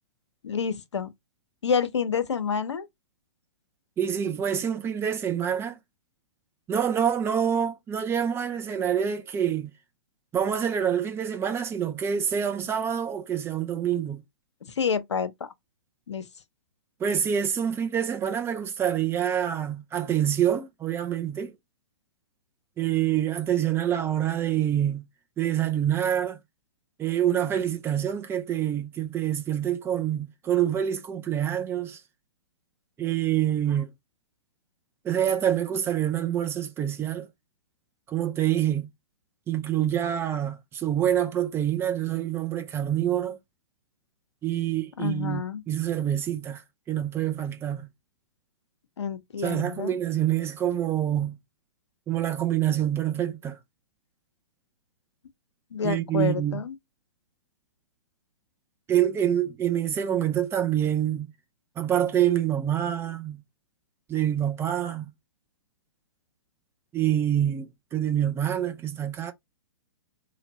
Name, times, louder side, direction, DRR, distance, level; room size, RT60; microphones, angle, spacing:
voice 1, 0.4-1.1 1.6-2.9 14.8-15.5 16.1-16.3 45.0-45.6 49.0-50.0 55.7-56.7, left 6 dB, 85° left, 0.7 m, -28 dB
voice 2, 4.0-5.8 6.7-9.7 10.3-14.2 17.0-21.5 22.8-25.0 25.4-26.4 27.0-32.0 33.0-33.9 35.0-37.3 38.1-38.9 39.5-43.4 44.4-46.6 46.9-47.9 49.4-51.4 52.1-53.6 55.8-56.6 58.9-61.3 61.8-63.4 64.1-65.1 66.9-69.3, right 10 dB, 15° right, 0.6 m, -26 dB
2.9 x 2.5 x 4.0 m
hypercardioid pair, 125°, 14 cm